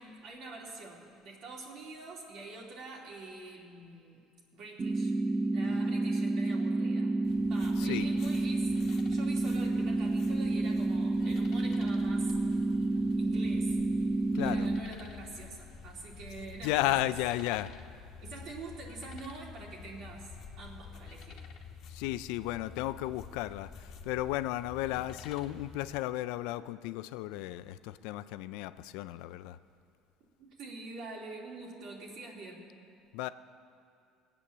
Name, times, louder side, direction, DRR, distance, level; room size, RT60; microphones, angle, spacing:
voice 1, 0.0-4.2 4.5-5.1 5.5-7.2 7.4-12.3 13.2-13.8 14.3-17.2 18.2-21.4 24.9-25.1 30.4-32.7, right 3 dB, 60° right, -2 dB, 3.0 m, -46 dB
sound 1, 4.8-14.8, right 2 dB, 25° right, 1.0 m, -29 dB
voice 2, 5.6-6.0 7.8-8.1 14.3-14.7 16.6-17.7 21.9-29.6 33.1-33.3, left 15 dB, 80° left, 14 dB, 0.4 m, -34 dB
sound 2, 7.2-26.0, left 5 dB, 60° left, 1.3 m, -49 dB
19.0 x 8.4 x 7.3 m, 2.4 s
cardioid pair, 115°, 0 cm